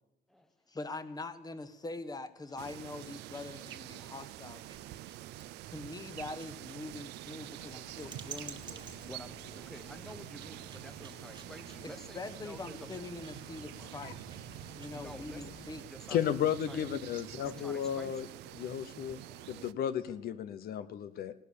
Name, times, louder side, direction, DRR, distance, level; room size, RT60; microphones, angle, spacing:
voice 1, 0.7-5.0 5.7-9.0 11.8-14.4 14.7-15.9 19.3-19.7, left 3 dB, 20° left, 11 dB, 1.3 m, -44 dB
sound 1, 2.4-15.1, right 5 dB, 25° right, 1.5 m, -54 dB
sound 2, 2.6-19.7, right 15 dB, 80° right, 0.5 m, -47 dB
sound 3, 7.6-15.8, left 5 dB, 40° left, 1.3 m, -55 dB
voice 2, 9.1-12.9 14.9-15.4 15.9-16.3 16.7-16.9 17.4-18.3, left 1 dB, ahead, 11 dB, 1.0 m, -50 dB
voice 3, 16.1-18.3 18.5-19.2 19.5-21.3, left 9 dB, 60° left, 13 dB, 0.8 m, -33 dB
17.0 x 12.0 x 7.0 m, 0.88 s
cardioid pair, 110°, 17 cm